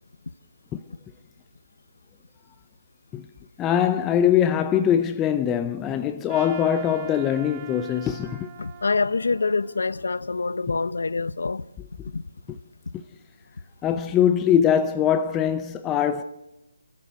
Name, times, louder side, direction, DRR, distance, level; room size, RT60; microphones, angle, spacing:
voice 1, 3.6-8.5 12.9-13.0 13.8-16.2, left 9 dB, 15° left, 0.6 m, -22 dB
Trumpet, 6.3-10.6, right 11 dB, 25° right, 1.4 m, -45 dB
voice 2, 8.6-11.6 12.1-12.2, left 4 dB, 70° left, 0.7 m, -25 dB
28.5 x 14.0 x 6.4 m
figure-of-eight pair, 150°, 0 cm